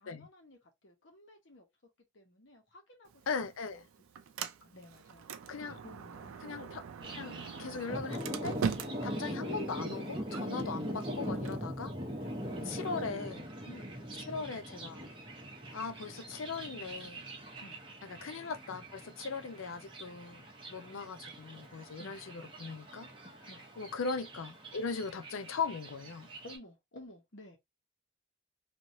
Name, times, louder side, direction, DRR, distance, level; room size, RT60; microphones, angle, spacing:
voice 1, 0.0-1.7 2.1-3.9 4.4-5.3 5.6-6.6 12.2-13.1 13.7-13.9 17.6-17.8 22.0-22.2 23.5-23.7 26.4-27.6, left 1 dB, 60° left, 1.1 m, -54 dB
Sliding door, 3.1-13.0, right 6 dB, 85° right, 0.4 m, -43 dB
voice 2, 3.3-3.8 5.5-5.8 6.4-6.8 7.1-11.9 12.7-13.5 14.3-15.1 15.7-17.3 18.1-23.1 23.8-26.3, left 5 dB, 75° left, 0.5 m, -39 dB
Thunder, 7.0-26.6, equal, 25° right, 0.8 m, -42 dB
3.1 x 2.6 x 2.7 m
head